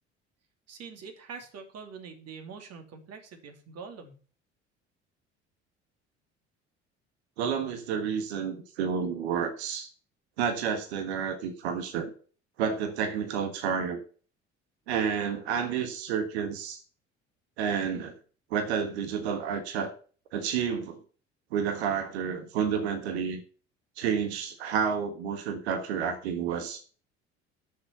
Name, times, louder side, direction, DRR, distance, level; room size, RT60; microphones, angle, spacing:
voice 1, 0.7-4.2, right 5 dB, 45° right, 5 dB, 2.7 m, -44 dB
voice 2, 7.4-9.9 10.4-12.1 12.6-14.0 14.9-16.8 17.6-18.1 18.5-19.9 20.3-21.0 21.5-23.4 24.0-26.8, right 7 dB, 70° right, 8 dB, 1.6 m, -30 dB
10.5 x 6.9 x 6.7 m, 0.40 s
figure-of-eight pair, 60°, 34 cm